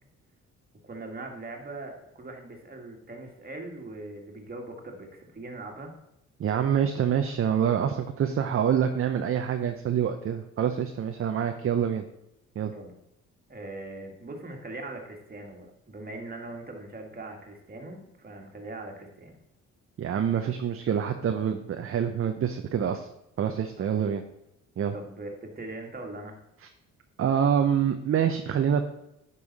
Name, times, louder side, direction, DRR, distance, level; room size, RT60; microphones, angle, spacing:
voice 1, 0.8-6.0 12.7-13.0 13.5-19.3 23.8-24.0 24.9-26.4, right 2 dB, 30° right, 2 dB, 1.9 m, -41 dB
voice 2, 6.4-12.1 12.6-12.7 20.0-23.1 23.4-24.2 24.8-24.9 27.2-28.8, right 8 dB, 45° right, 6 dB, 0.7 m, -26 dB
9.7 x 5.6 x 4.1 m, 0.84 s
cardioid pair, 90°, 30 cm